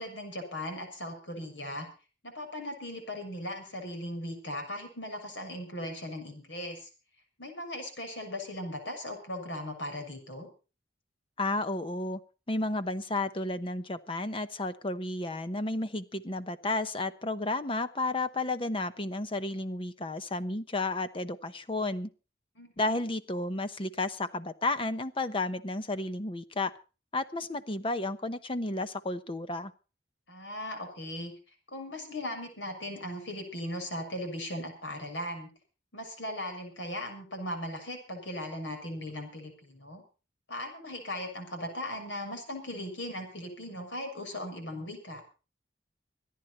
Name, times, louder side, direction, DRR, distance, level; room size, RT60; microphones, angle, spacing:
voice 1, 0.0-1.9 2.2-6.9 7.4-10.5 22.6-23.0 30.3-31.3 31.7-35.5 35.9-40.0 40.5-45.2, left 1 dB, 85° left, 4 dB, 6.6 m, -38 dB
voice 2, 11.4-12.2 12.5-22.1 22.8-26.7 27.1-29.7, left 2 dB, 30° left, 12 dB, 0.9 m, -32 dB
25.5 x 10.5 x 4.3 m, 0.34 s
head